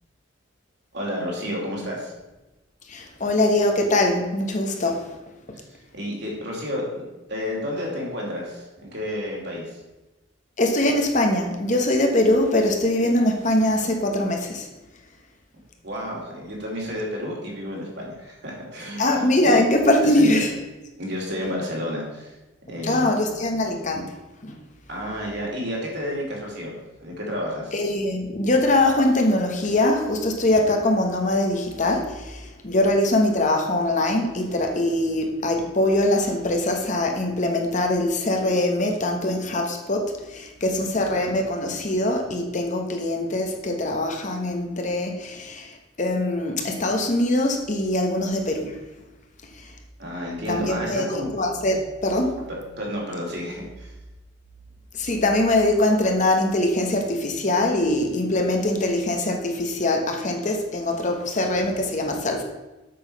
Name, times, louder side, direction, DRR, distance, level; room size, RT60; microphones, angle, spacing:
voice 1, 0.9-2.1 5.7-7.0 7.3-9.8 15.8-19.6 20.0-20.4 21.0-22.3 22.7-23.1 24.9-27.7 50.0-51.3 52.8-53.9, equal, 55° right, -2 dB, 2.8 m, -31 dB
voice 2, 2.9-5.0 10.6-14.7 19.0-20.5 22.8-24.1 24.4-24.5 27.7-48.8 49.5-49.7 50.5-52.4 54.9-62.4, left 1 dB, 40° left, 3 dB, 1.1 m, -22 dB
7.7 x 6.5 x 5.3 m, 1.1 s
head